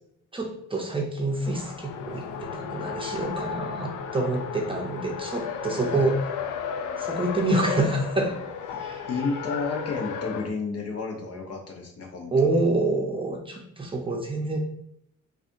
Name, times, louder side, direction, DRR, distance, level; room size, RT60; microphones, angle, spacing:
voice 1, 0.3-6.2 7.0-8.4 8.8-9.0 12.3-14.6, right 2 dB, 15° right, 0 dB, 0.6 m, -27 dB
Race car auto racing, 1.3-10.5, left 6 dB, 80° left, 0.5 m, -34 dB
voice 2, 9.1-12.7, left 4 dB, 55° left, 2 dB, 0.9 m, -32 dB
4.1 x 2.5 x 2.5 m, 0.72 s
cardioid pair, 90°, 30 cm